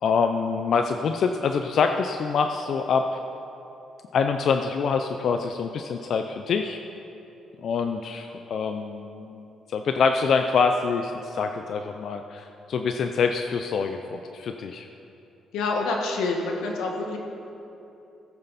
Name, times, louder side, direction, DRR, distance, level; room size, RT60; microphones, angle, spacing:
voice 1, 0.0-3.2 4.1-6.8 7.6-14.9, left 5 dB, 65° left, 6 dB, 0.5 m, -25 dB
voice 2, 15.5-17.2, left 3 dB, 90° left, 1 dB, 1.6 m, -27 dB
16.0 x 8.8 x 4.2 m, 2.8 s
cardioid pair, 90°, 0 cm